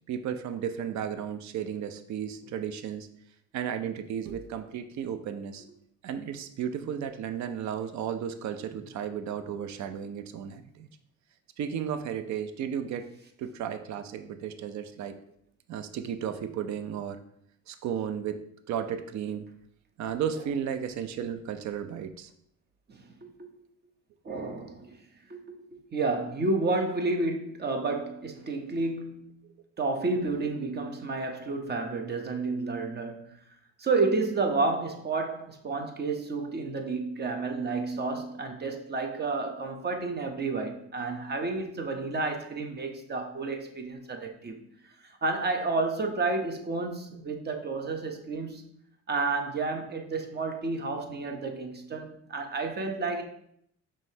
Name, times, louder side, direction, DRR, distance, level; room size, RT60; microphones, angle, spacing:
voice 1, 0.1-3.1 3.5-5.6 6.0-10.9 11.6-13.1 13.4-15.1 15.7-17.2 17.7-19.5 20.0-22.3, right 8 dB, 65° right, 0.5 m, -34 dB
voice 2, 22.9-23.5 24.2-25.0 25.3-29.3 29.8-33.4 33.8-44.6 45.0-48.7 49.1-53.2, right 3 dB, 35° right, 0.7 m, -31 dB
5.4 x 3.2 x 2.7 m
cardioid pair, 90°, 30 cm